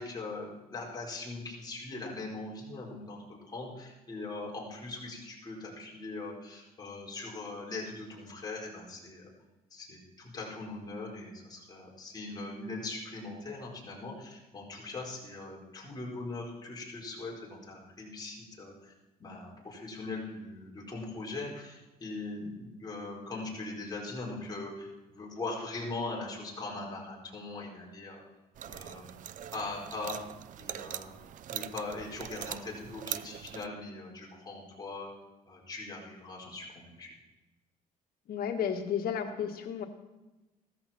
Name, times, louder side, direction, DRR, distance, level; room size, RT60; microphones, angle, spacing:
voice 1, 0.0-9.3 9.7-18.9 19.2-28.2 28.6-29.1 29.5-30.2 30.6-31.1 31.5-35.1 35.5-37.1, left 3 dB, 25° left, -3 dB, 4.6 m, -41 dB
sound 1, 28.6-33.7, right 10 dB, 55° right, 0.5 m, -42 dB
voice 2, 38.3-39.8, left 8 dB, 70° left, 4 dB, 1.7 m, -32 dB
16.0 x 14.0 x 4.4 m, 1.1 s
cardioid pair, 120°, 16 cm